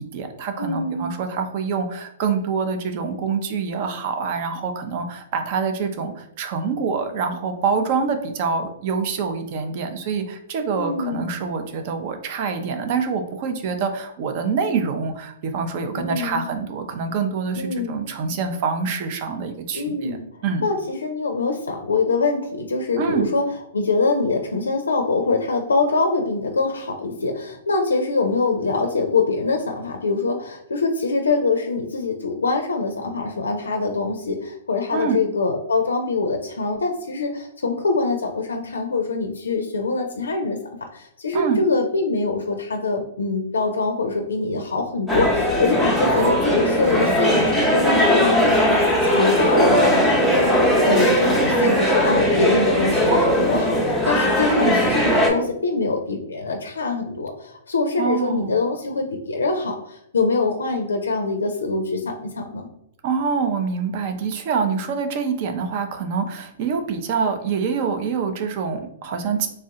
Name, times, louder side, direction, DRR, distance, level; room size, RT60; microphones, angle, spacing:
voice 1, 0.0-20.7 23.0-23.3 34.9-35.2 41.3-41.6 54.5-54.8 58.0-58.6 63.0-69.5, right 5 dB, 45° right, 6 dB, 0.5 m, -25 dB
voice 2, 0.6-1.1 10.8-11.4 16.0-16.4 17.6-17.9 19.7-20.2 20.6-23.4 23.7-40.6 40.9-62.7, left 3 dB, 90° left, 4 dB, 0.4 m, -24 dB
sound 1, 45.1-55.3, equal, 5° right, 0.7 m, -19 dB
3.2 x 2.3 x 2.8 m, 0.76 s
hypercardioid pair, 130°, 0 cm